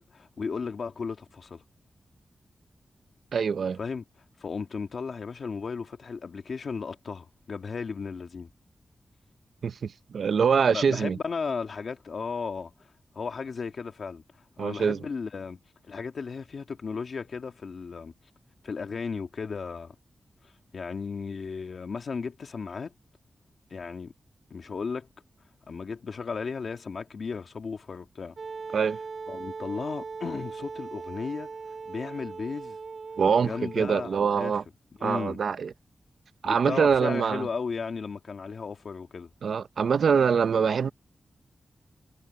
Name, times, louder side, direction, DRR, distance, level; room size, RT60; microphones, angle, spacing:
voice 1, 0.0-1.6 3.8-4.0 4.4-8.5 10.7-14.2 14.6-18.1 18.6-20.0 20.4-22.9 23.7-24.1 24.5-25.1 25.7-28.4 29.3-31.5 31.9-32.8 33.4-34.6 35.0-35.4 36.4-39.3, left 5 dB, 65° left, 2.1 m, -35 dB
voice 2, 3.3-3.8 9.6-11.2 14.6-15.0 28.7-29.0 33.2-34.6 35.0-35.7 36.4-37.5 39.4-40.9, right 6 dB, 80° right, 0.9 m, -24 dB
Wind instrument woodwind instrument, 28.4-34.3, right 4 dB, 55° right, 2.9 m, -39 dB
wide cardioid pair, 100°, 0 cm